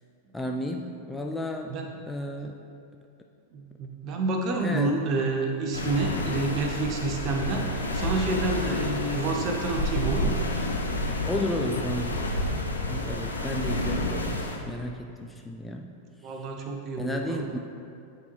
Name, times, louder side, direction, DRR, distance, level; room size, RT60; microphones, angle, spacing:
voice 1, 0.3-1.7 2.1-2.5 4.6-5.0 11.3-12.2 12.9-15.9 16.2-16.4 17.0-17.6, left 1 dB, 5° left, 2 dB, 0.3 m, -33 dB
voice 2, 3.5-10.4 16.2-17.6, right 3 dB, 35° right, 2 dB, 0.8 m, -29 dB
sound 1, 5.7-14.6, left 1 dB, 75° left, 0.6 m, -29 dB
9.4 x 4.0 x 3.1 m, 2.5 s
figure-of-eight pair, 90°, 0 cm